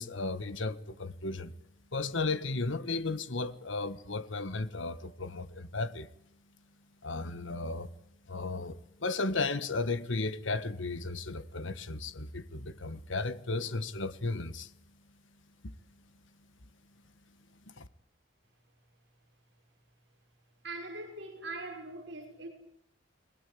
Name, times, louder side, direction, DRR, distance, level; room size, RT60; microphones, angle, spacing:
voice 1, 0.0-1.6 1.9-6.1 7.0-7.9 8.3-14.7 17.8-17.9, left 3 dB, 75° left, 1.5 m, -34 dB
voice 2, 20.6-22.5, right 2 dB, 60° right, 5.9 m, -41 dB
29.0 x 21.0 x 8.6 m
head